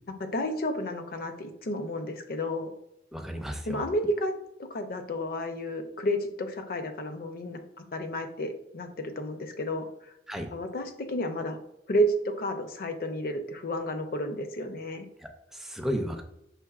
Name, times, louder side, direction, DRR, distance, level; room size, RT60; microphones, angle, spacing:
voice 1, 0.2-2.7 3.7-4.3 4.6-10.1 10.5-11.6 11.9-15.1, equal, 55° left, 7 dB, 0.5 m, -31 dB
voice 2, 3.1-3.9 10.3-10.5 15.2-16.2, equal, ahead, 4 dB, 0.4 m, -34 dB
5.7 x 3.3 x 2.4 m, 0.81 s
head